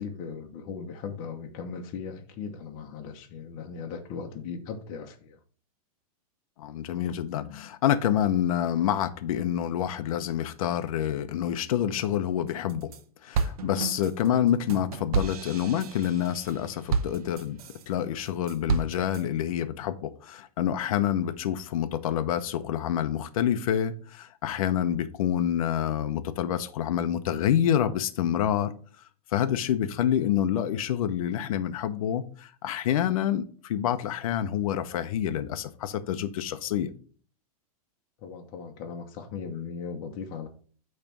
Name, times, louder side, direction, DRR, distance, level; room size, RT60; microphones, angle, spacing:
voice 1, 0.0-5.4 14.2-14.4 38.2-40.5, left 6 dB, 35° left, 1.0 m, -38 dB
voice 2, 6.6-12.9 13.2-17.6 17.9-28.7 29.3-36.9, left 10 dB, 65° left, 0.7 m, -27 dB
sound 1, 12.5-13.0 13.3-17.9 18.3-19.2, right 5 dB, 70° right, 0.9 m, -31 dB
8.8 x 3.3 x 6.0 m
supercardioid pair, 165°, 19 cm